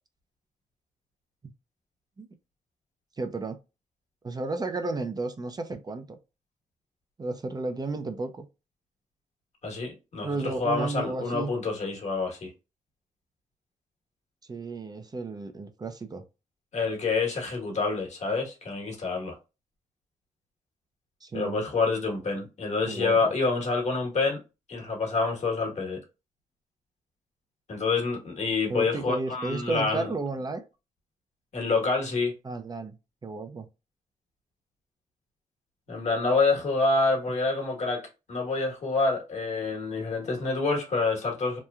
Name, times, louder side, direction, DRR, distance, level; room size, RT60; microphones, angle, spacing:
voice 1, 3.2-3.6 4.2-6.2 7.2-8.5 10.2-11.5 14.5-16.2 21.2-21.6 22.9-23.3 28.7-30.7 32.4-33.0 33.2-33.7, right 3 dB, 30° right, 0.5 m, -33 dB
voice 2, 9.6-12.5 16.7-19.4 21.3-24.4 24.7-26.0 27.7-30.1 31.5-32.3 35.9-38.0 38.3-41.6, left 3 dB, 65° left, 1.3 m, -27 dB
3.0 x 2.2 x 2.3 m
cardioid pair, 60°, 13 cm